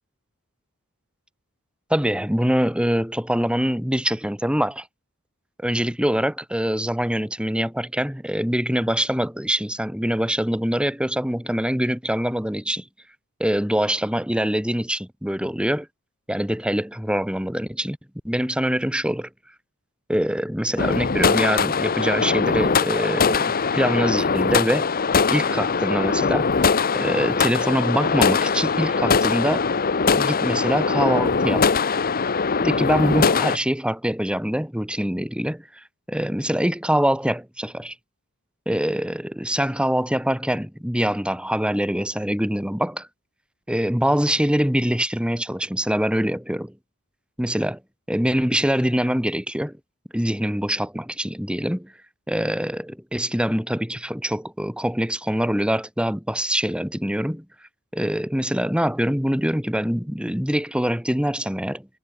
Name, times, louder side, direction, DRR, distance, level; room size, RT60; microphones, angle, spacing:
voice 1, 1.9-4.9 5.6-12.8 13.4-15.9 16.3-18.0 18.2-19.3 20.1-25.0 25.3-29.7 30.1-31.7 32.6-37.9 38.7-43.1 43.7-46.7 47.4-47.8 48.1-49.8 50.1-51.9 52.3-57.4 57.9-61.9, equal, 5° right, 6.1 m, -24 dB
sound 1, 20.8-33.6, left 5 dB, 45° left, 1.0 m, -21 dB
head